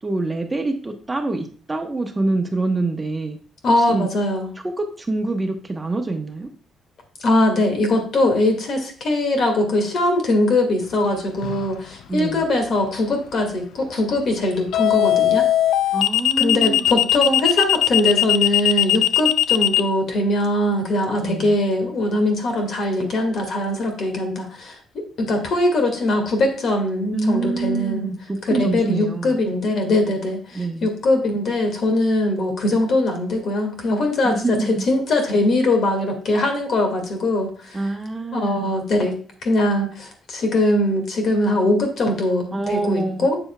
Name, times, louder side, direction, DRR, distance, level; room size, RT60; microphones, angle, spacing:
voice 1, 0.0-3.4 3.8-4.1 4.6-6.5 12.1-12.5 15.9-16.9 21.2-21.6 27.1-29.4 30.5-30.9 34.2-34.8 37.7-38.7 42.5-43.3, right 2 dB, 20° right, 4 dB, 1.0 m, -25 dB
voice 2, 3.6-4.5 7.2-15.4 16.4-28.1 28.4-37.8 38.3-39.2 39.4-43.4, left 1 dB, 60° left, 4 dB, 1.9 m, -21 dB
sound 1, 11.4-11.8 14.7-19.8, left 13 dB, 80° left, 0.4 m, -18 dB
7.7 x 6.9 x 2.3 m, 0.43 s
cardioid pair, 90°, 0 cm